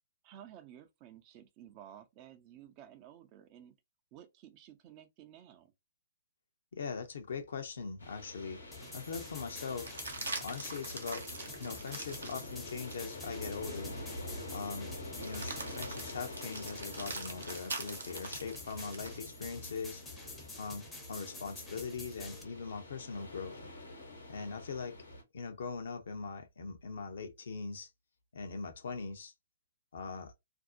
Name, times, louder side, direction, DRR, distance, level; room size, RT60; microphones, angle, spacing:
voice 1, 0.2-3.7 4.1-5.7, right 10 dB, 30° right, 0.4 m, -54 dB
voice 2, 6.7-8.6 8.9-10.0 10.4-11.3 11.6-13.9 14.5-14.9 15.2-23.6 24.3-25.0 25.3-27.9 28.3-29.3 29.9-30.3, left 5 dB, 65° left, 0.6 m, -41 dB
sound 1, 8.0-25.2, left 1 dB, 85° left, 1.1 m, -47 dB
sound 2, 8.2-8.3 9.7-13.2 13.8-13.9 15.1-19.2 21.4-22.3, right 3 dB, 80° right, 0.8 m, -44 dB
sound 3, 8.7-22.4, left 2 dB, 5° left, 0.6 m, -49 dB
2.6 x 2.0 x 2.5 m
figure-of-eight pair, 125°, 0 cm